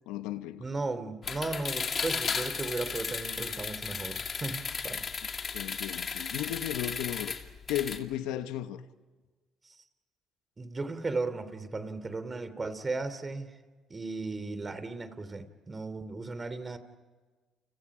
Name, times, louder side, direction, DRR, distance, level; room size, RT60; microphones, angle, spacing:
voice 1, 0.1-0.7 5.5-7.4 7.7-8.8, left 12 dB, 85° left, 1.1 m, -35 dB
voice 2, 0.6-5.1 9.7-9.8 10.6-13.5 13.9-16.8, right 3 dB, 30° right, 3.2 m, -36 dB
sound 1, 1.2-8.0, left 5 dB, 45° left, 2.6 m, -35 dB
30.0 x 29.5 x 5.0 m
supercardioid pair, 65°, 0 cm